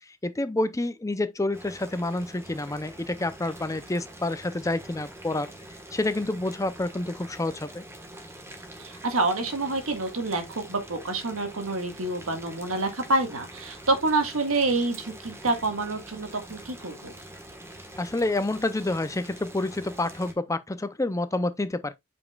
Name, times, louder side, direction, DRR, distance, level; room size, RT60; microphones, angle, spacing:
voice 1, 0.2-5.5 5.9-7.8 18.0-21.9, left 2 dB, 15° left, 0.5 m, -28 dB
Boiling, 1.5-20.3, right 1 dB, 10° right, 1.4 m, -45 dB
voice 2, 8.8-17.1, right 2 dB, 80° right, 1.7 m, -27 dB
8.5 x 5.1 x 2.4 m
head